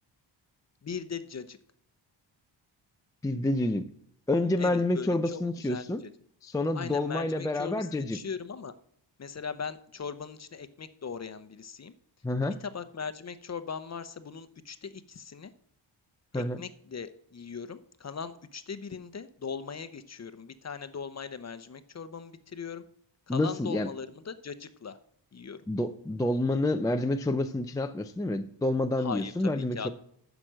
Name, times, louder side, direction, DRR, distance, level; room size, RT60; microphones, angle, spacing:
voice 1, 0.8-1.6 4.6-6.1 6.7-8.7 9.2-11.9 12.5-15.5 16.3-22.8 23.3-25.0 25.3-25.6 29.0-29.9, left 6 dB, 35° left, 0.7 m, -39 dB
voice 2, 3.2-3.9 4.3-6.0 6.4-8.2 12.2-12.6 16.3-16.6 23.3-23.9 25.7-29.9, left 2 dB, 10° left, 0.4 m, -28 dB
10.0 x 6.1 x 6.2 m
cardioid pair, 90°, 48 cm